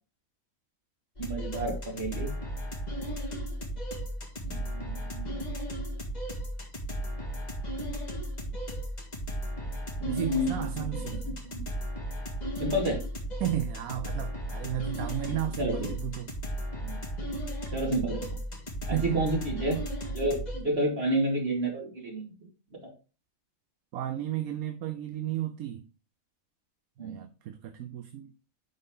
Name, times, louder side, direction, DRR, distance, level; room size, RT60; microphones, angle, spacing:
sound 1, 1.2-20.6, equal, 30° left, 1.8 m, -35 dB
voice 1, 1.2-2.3 4.4-5.3 10.0-10.7 11.4-11.6 12.6-13.0 15.6-15.9 16.8-16.9 17.7-18.4 18.9-19.8 20.1-22.3 27.0-27.2, right 1 dB, 45° right, 2.5 m, -30 dB
voice 2, 10.0-11.2 13.4-16.3 18.9-19.2 23.9-25.9 27.0-28.3, right 12 dB, 85° right, 1.2 m, -33 dB
10.5 x 4.0 x 3.7 m
omnidirectional pair, 1.5 m